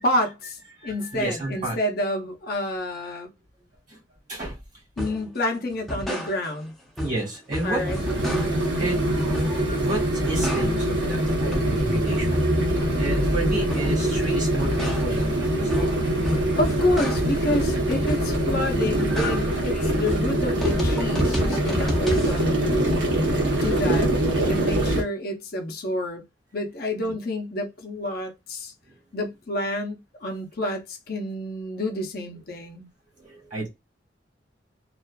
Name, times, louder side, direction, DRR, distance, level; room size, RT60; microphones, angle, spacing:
voice 1, 0.0-3.3 5.0-6.7 7.6-8.0 16.6-23.0 23.6-24.1 24.5-26.2 26.5-28.7 29.1-32.9, left 1 dB, 55° left, 0.6 m, -29 dB
voice 2, 0.8-1.8 3.9-4.0 4.3-4.6 7.0-8.4 8.7-15.5 27.0-27.1 33.2-33.7, right 2 dB, 40° right, 1.3 m, -32 dB
sound 1, 5.0-5.3 5.7-6.7 7.0-8.8 9.2-9.8 10.1-11.0 11.3-14.1 14.4-17.5 17.9-18.5 18.8-22.4, equal, ahead, 0.5 m, -31 dB
sound 2, 7.6-25.0, right 1 dB, 85° right, 0.9 m, -24 dB
2.4 x 2.4 x 2.2 m
head